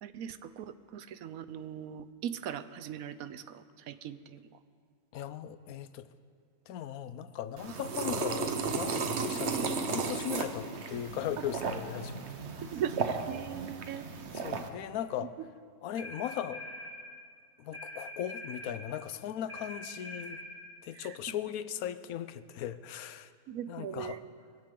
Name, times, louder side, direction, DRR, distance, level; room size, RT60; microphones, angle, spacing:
voice 1, 0.0-4.4 12.6-14.0 21.0-21.2 23.5-24.2, right 9 dB, 75° right, 13 dB, 1.1 m, -40 dB
voice 2, 5.1-6.1 6.7-12.2 14.3-15.3 15.8-16.6 17.6-20.4 20.8-23.3 23.7-24.2, left 10 dB, 80° left, 13 dB, 1.1 m, -38 dB
sound 1, 7.6-14.7, right 5 dB, 55° right, 1.2 m, -34 dB
sound 2, 16.0-17.0 17.7-18.7 19.5-20.5, left 1 dB, 15° left, 2.6 m, -43 dB
22.0 x 16.0 x 3.8 m, 2.1 s
omnidirectional pair, 1.5 m